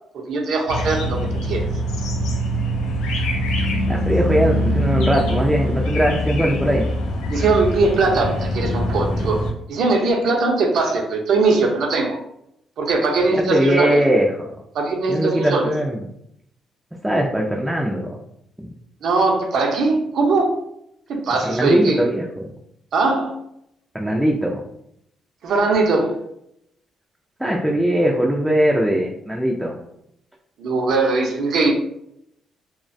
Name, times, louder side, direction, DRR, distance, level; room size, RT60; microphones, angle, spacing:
voice 1, 0.3-1.7 7.3-9.4 9.7-12.2 12.8-14.0 14.7-15.7 19.0-20.6 21.1-22.0 22.9-23.4 25.4-26.3 30.6-31.7, right 3 dB, 70° right, 2 dB, 0.5 m, -20 dB
sound 1, 0.7-9.5, equal, 90° left, 0.4 m, -23 dB
voice 2, 3.9-6.9 13.3-14.5 15.1-16.0 17.0-18.2 21.4-22.5 23.9-24.6 27.4-29.8, right 1 dB, 5° right, -2 dB, 0.3 m, -20 dB
2.4 x 2.1 x 2.5 m, 0.76 s
cardioid pair, 90°, 0 cm